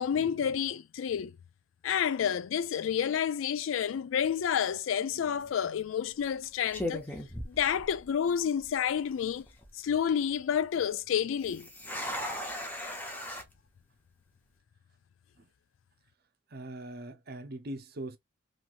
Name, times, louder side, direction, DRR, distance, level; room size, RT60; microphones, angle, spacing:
voice 1, 0.0-1.4 1.8-7.1 7.4-9.5 9.7-11.7, left 8 dB, 75° left, 0.3 m, -29 dB
sound 1, 5.2-5.5 6.2-6.4 6.7-8.3 8.6-8.7 9.3-9.7 11.4-13.4, left 1 dB, 10° left, 0.7 m, -38 dB
voice 2, 16.5-18.2, right 1 dB, 50° right, 0.7 m, -41 dB
3.0 x 2.7 x 2.4 m
head